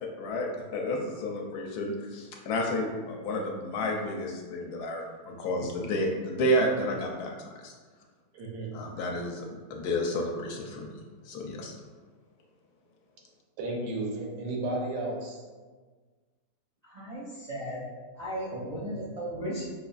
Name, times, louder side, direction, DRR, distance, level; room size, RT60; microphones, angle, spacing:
voice 1, 0.0-7.7 8.7-11.7, left 1 dB, 75° left, 0 dB, 1.1 m, -31 dB
voice 2, 8.3-8.7 13.6-15.4 18.5-18.6 18.9-19.0, right 2 dB, 85° right, -1 dB, 1.3 m, -33 dB
voice 3, 16.8-17.9 18.1-19.7, equal, 45° right, -8 dB, 0.5 m, -36 dB
5.2 x 2.4 x 2.3 m, 1.4 s
omnidirectional pair, 1.8 m